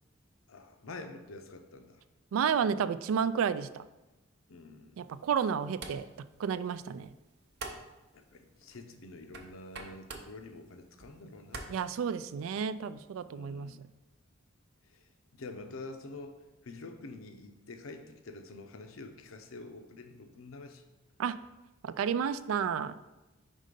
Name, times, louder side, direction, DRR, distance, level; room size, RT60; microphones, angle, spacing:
voice 1, 0.5-2.0 4.5-5.2 8.1-11.8 13.3-13.8 14.9-20.8, left 3 dB, 80° left, 6 dB, 0.6 m, -47 dB
voice 2, 2.3-3.8 5.0-6.1 6.4-7.1 11.7-13.7 21.2-21.4 21.8-23.0, right 7 dB, 80° right, 14 dB, 0.3 m, -31 dB
sound 1, 5.0-12.5, right 3 dB, 55° right, 0.7 m, -49 dB
5.3 x 3.7 x 5.1 m, 1.1 s
head